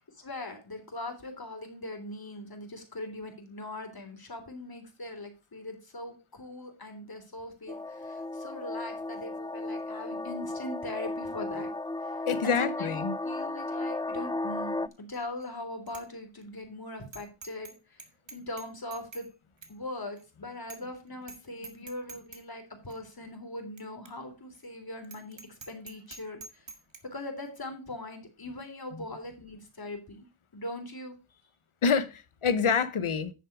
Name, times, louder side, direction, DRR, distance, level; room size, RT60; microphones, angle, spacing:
voice 1, 0.2-11.7 12.0-18.0 18.3-19.2 19.7-25.4 25.7-26.7 27.1-30.2 30.5-31.1, left 1 dB, 45° left, 3.4 m, -41 dB
sound 1, 7.7-14.9, left 2 dB, 10° left, 0.4 m, -35 dB
voice 2, 12.3-13.2 31.8-33.3, left 6 dB, 90° left, 1.1 m, -27 dB
Bicycle bell, 15.1-15.5 15.9-16.0 16.4-16.5 17.1-17.7 18.0-19.3 19.6-19.7 20.2-20.3 20.7-21.0 21.2-21.4 21.6-22.4 22.9-23.0 23.8-23.9 24.1-24.2 24.5-24.7 25.0-27.0, right 4 dB, 65° right, 2.0 m, -46 dB
10.5 x 6.9 x 4.8 m
wide cardioid pair, 65°, 48 cm